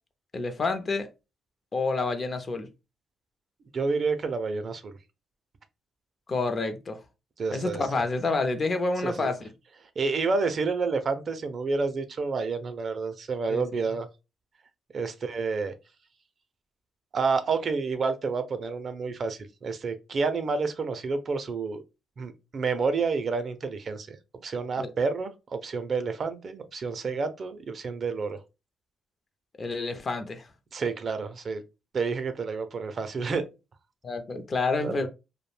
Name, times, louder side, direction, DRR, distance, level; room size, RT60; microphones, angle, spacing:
voice 1, 0.3-1.1 1.7-2.7 6.3-7.0 7.5-9.4 13.5-13.6 24.8-24.9 29.6-30.4 34.0-35.1, left 3 dB, 40° left, 0.5 m, -28 dB
voice 2, 3.7-5.0 7.4-7.8 9.0-9.3 10.0-14.1 14.9-15.7 17.1-21.8 22.2-24.2 24.4-28.4 30.7-31.6 31.9-33.4 34.8-34.9, right 4 dB, 45° right, 0.4 m, -29 dB
2.4 x 2.1 x 3.1 m
cardioid pair, 90°, 0 cm